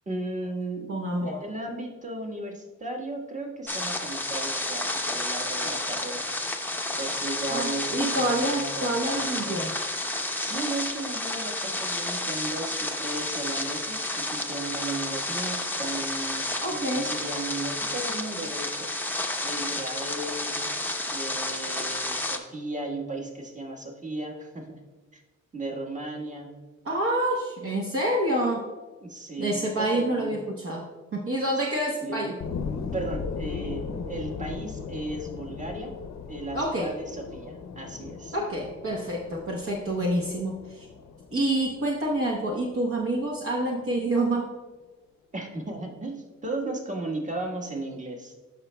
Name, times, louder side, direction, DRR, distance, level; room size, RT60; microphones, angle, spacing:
voice 1, 0.0-1.0 1.4-6.3 7.0-9.8 10.4-20.6 21.1-24.8 25.1-25.2 25.5-26.5 29.0-30.3 32.0-32.3 32.9-35.9 36.3-38.4 45.3-48.3, right 2 dB, 25° right, 1 dB, 1.4 m, -35 dB
voice 2, 0.9-1.4 7.5-9.7 16.6-17.1 26.8-28.6 29.4-30.9 31.1-32.3 36.5-36.9 38.3-40.9 41.3-44.5, right 1 dB, 45° right, -1 dB, 1.0 m, -27 dB
sound 1, 3.7-22.4, left 1 dB, 5° left, 0.7 m, -31 dB
sound 2, 32.4-43.4 43.9-44.0, left 5 dB, 65° left, 0.7 m, -38 dB
13.0 x 5.3 x 2.2 m, 1.3 s
cardioid pair, 90°, 30 cm